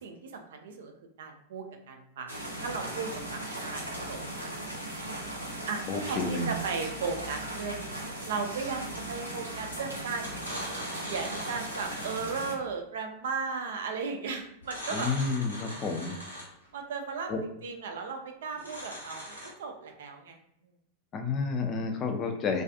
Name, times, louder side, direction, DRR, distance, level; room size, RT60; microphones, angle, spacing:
voice 1, 0.0-2.3 2.6-5.0 5.7-10.3 11.0-15.1 16.7-20.4, right 5 dB, 60° right, 5 dB, 0.4 m, -36 dB
sound 1, 2.3-12.5, right 1 dB, 90° right, 0.7 m, -38 dB
voice 2, 5.9-6.5 14.9-16.2 17.3-17.4 21.1-22.6, left 4 dB, 30° left, 4 dB, 0.4 m, -30 dB
sound 2, 9.3-9.6 10.1-12.4 14.6-16.7 18.5-19.5, equal, 90° left, 0.8 m, -41 dB
2.3 x 2.3 x 2.6 m, 0.78 s
figure-of-eight pair, 90°, 0 cm